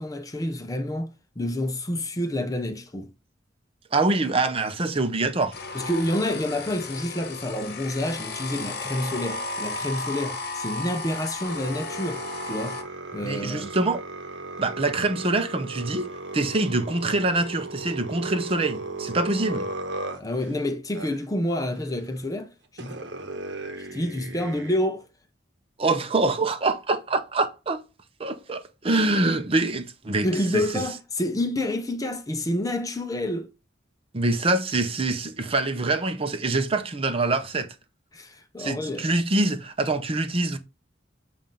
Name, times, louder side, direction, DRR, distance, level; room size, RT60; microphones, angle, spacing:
voice 1, 0.0-3.1 5.7-12.8 13.1-13.7 20.2-23.0 23.8-25.1 30.2-33.5 38.1-39.1, left 1 dB, 20° left, 0.5 m, -28 dB
voice 2, 3.9-5.6 13.2-14.0 14.6-16.1 16.3-19.7 25.8-27.8 28.2-30.3 30.5-30.8 34.1-37.7 38.6-40.6, right 2 dB, 30° right, 0.7 m, -25 dB
sound 1, 5.5-12.8, left 3 dB, 55° left, 1.0 m, -34 dB
sound 2, 11.4-20.5 20.9-21.2 22.2-22.3 22.8-24.8, right 2 dB, 70° right, 0.9 m, -36 dB
7.3 x 2.5 x 5.2 m
head